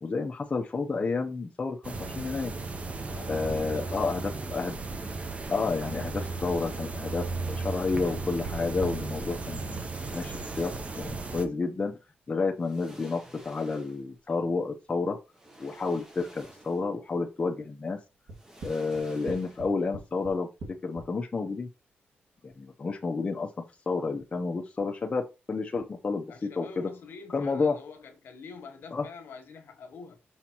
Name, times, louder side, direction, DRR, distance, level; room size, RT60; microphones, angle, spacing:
voice 1, 0.0-2.5 3.3-4.7 5.5-9.8 10.1-12.0 12.3-15.2 15.6-18.0 18.6-20.5 20.8-21.7 22.4-23.5 23.9-26.9 27.3-27.8 28.9-29.1, left 4 dB, 30° left, 0.8 m, -30 dB
sound 1, 1.8-11.5, right 3 dB, 35° right, 0.8 m, -35 dB
voice 2, 3.1-4.0 26.3-30.2, left 4 dB, 70° left, 1.5 m, -46 dB
sound 2, 9.6-11.1 12.1-12.2 12.6-14.2 15.3-17.0 17.3-17.5 18.3-19.9 20.2-20.3, right 1 dB, 15° right, 1.2 m, -52 dB
sound 3, 18.3-21.1, right 2 dB, 75° right, 1.9 m, -41 dB
5.7 x 5.6 x 2.9 m
wide cardioid pair, 130°, 4 cm